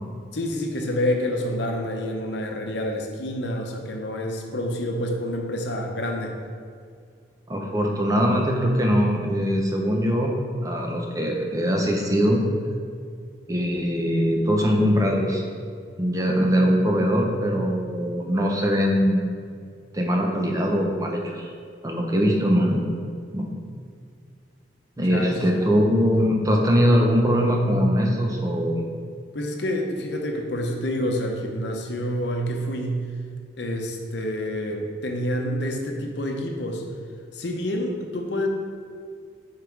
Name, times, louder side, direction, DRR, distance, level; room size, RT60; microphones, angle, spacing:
voice 1, 0.3-6.3 25.0-25.6 29.3-33.1 33.6-36.8 37.3-38.5, left 1 dB, 65° left, 2 dB, 0.8 m, -28 dB
voice 2, 7.5-10.3 10.6-12.4 13.5-15.4 16.0-19.6 19.9-21.5 21.8-22.8 23.3-23.5 25.0-28.8, equal, 20° right, 0 dB, 0.7 m, -22 dB
5.7 x 4.8 x 4.6 m, 2.1 s
head